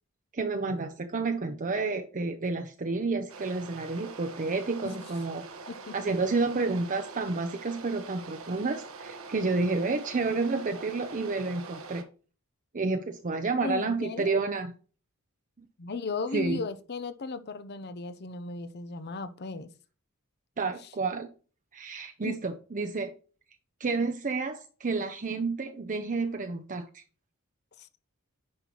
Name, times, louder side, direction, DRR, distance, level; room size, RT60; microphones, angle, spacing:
voice 1, 0.3-5.4 5.9-12.0 12.7-14.7 16.3-16.6 20.6-21.3 21.7-23.1 23.8-27.0, right 3 dB, 40° right, 0.7 m, -30 dB
sound 1, 3.3-12.0, right 4 dB, 70° right, 1.2 m, -44 dB
voice 2, 13.6-14.4 15.8-19.7 22.2-22.4 27.8-27.9, left 3 dB, 50° left, 0.7 m, -36 dB
9.8 x 5.5 x 3.0 m
head